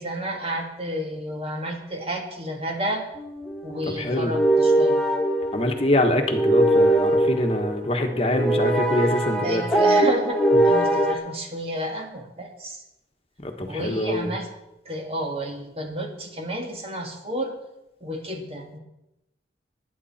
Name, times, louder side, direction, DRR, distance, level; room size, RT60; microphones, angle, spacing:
voice 1, 0.0-3.1 3.6-5.0 9.4-12.8 13.7-14.5 14.9-17.6 18.0-18.8, right 1 dB, 30° right, 2 dB, 1.9 m, -31 dB
sound 1, 3.2-11.1, right 1 dB, 5° left, 1.5 m, -22 dB
voice 2, 3.9-4.3 5.5-9.6 13.4-14.3, left 1 dB, 30° left, 5 dB, 1.4 m, -24 dB
19.5 x 9.9 x 4.3 m, 0.91 s
head